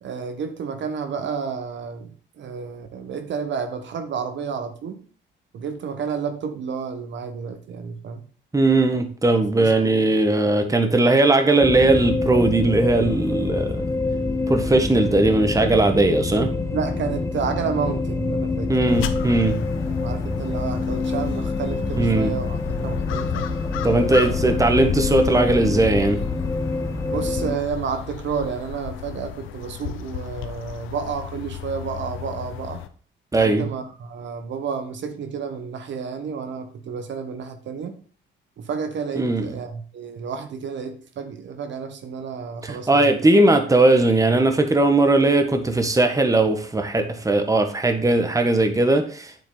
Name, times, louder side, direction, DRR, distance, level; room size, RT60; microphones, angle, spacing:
voice 1, 0.0-5.0 5.5-8.2 8.9-9.0 9.5-10.1 10.7-10.8 16.7-18.7 19.9-23.5 24.2-24.3 27.1-32.8 33.3-38.0 38.6-43.1, right 6 dB, 65° right, 8 dB, 1.4 m, -31 dB
voice 2, 8.5-13.9 14.5-16.5 18.7-19.6 22.0-22.3 23.8-26.2 33.3-33.7 39.2-39.6 42.6-49.4, right 2 dB, 15° right, 6 dB, 1.6 m, -19 dB
sound 1, 11.6-27.6, left 3 dB, 15° left, 1.2 m, -26 dB
sound 2, 18.9-32.9, left 10 dB, 85° left, 0.9 m, -32 dB
9.0 x 7.4 x 4.1 m, 0.42 s
cardioid pair, 90°, 20 cm